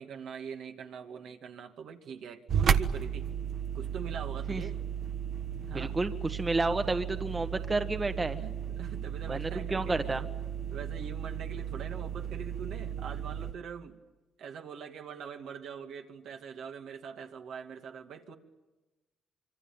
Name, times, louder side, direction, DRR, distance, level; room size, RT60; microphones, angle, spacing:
voice 1, 0.0-3.3 3.7-4.8 5.7-6.0 7.2-7.4 8.4-10.2 10.7-14.0 14.4-18.3, right 6 dB, 75° right, 3 dB, 2.4 m, -43 dB
sound 1, 2.5-13.5, right 8 dB, 60° right, 1.3 m, -34 dB
voice 2, 5.7-8.4 9.3-10.2, right 2 dB, 25° right, 8 dB, 1.5 m, -31 dB
26.0 x 24.0 x 9.0 m, 1.1 s
cardioid pair, 90°, 0 cm